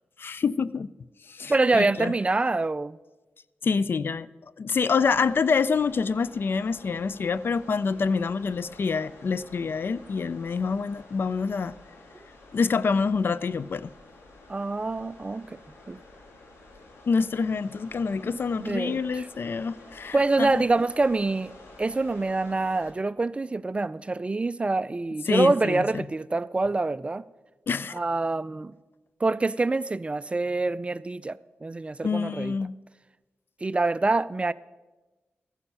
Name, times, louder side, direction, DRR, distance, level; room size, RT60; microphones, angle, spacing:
voice 1, 0.2-0.9 1.3-2.1 3.6-4.3 4.6-11.7 12.5-13.9 17.1-20.6 25.3-26.0 27.7-27.9 32.0-32.7, left 5 dB, 55° left, 0.4 m, -26 dB
voice 2, 1.5-3.0 14.5-15.6 15.9-16.0 18.6-19.3 20.1-21.5 21.8-27.2 27.9-28.7 29.2-32.6 33.6-34.5, right 3 dB, 25° right, 0.4 m, -26 dB
sound 1, 5.0-22.9, left 2 dB, 80° left, 2.4 m, -50 dB
14.5 x 11.0 x 5.5 m
cardioid pair, 70°, 4 cm